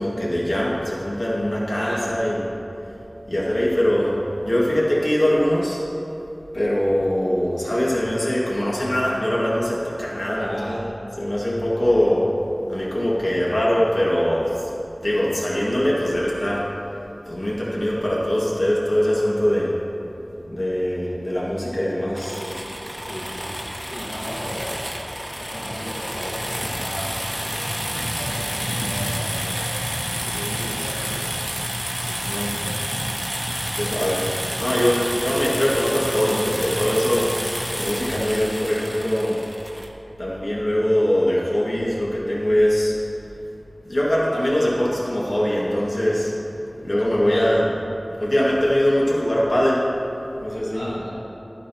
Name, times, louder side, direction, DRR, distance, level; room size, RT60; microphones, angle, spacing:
voice 1, 0.0-2.4 3.3-5.8 6.5-10.8 11.2-16.7 17.3-19.7 20.5-22.4 22.8-23.1 32.2-32.6 33.7-34.2 34.6-37.3 37.8-39.4 40.2-42.9 43.9-46.3 46.8-47.7 48.2-49.9 50.4-51.0, equal, 65° left, -6 dB, 2.1 m, -22 dB
voice 2, 1.8-2.4 10.4-11.0 23.0-31.4 32.0-32.8 34.9-35.3 47.3-47.6 50.7-51.2, equal, 80° left, -9 dB, 1.7 m, -37 dB
sound 1, 22.2-39.9, equal, 10° right, 1.0 m, -29 dB
12.5 x 9.1 x 3.0 m, 2.8 s
wide cardioid pair, 50°, 0 cm